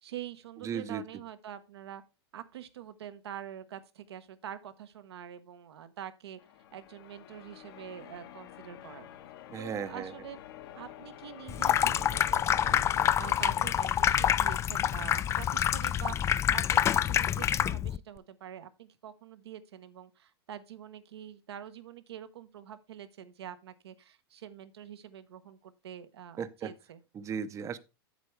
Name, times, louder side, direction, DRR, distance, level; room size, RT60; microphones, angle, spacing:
voice 1, 0.0-2.0 2.3-6.4 6.7-9.1 9.6-10.4 10.8-12.8 13.2-27.0, right 10 dB, 80° right, 1.1 m, -45 dB
voice 2, 0.6-1.0 9.5-10.1 26.4-26.7 27.1-27.8, right 7 dB, 25° right, 0.7 m, -36 dB
Church bell, 6.4-13.7, left 11 dB, 65° left, 1.2 m, -49 dB
Water tap faucet / Sink (filling or washing), 11.5-18.0, left 10 dB, 20° left, 0.3 m, -27 dB
8.2 x 7.8 x 3.3 m
hypercardioid pair, 115°, 13 cm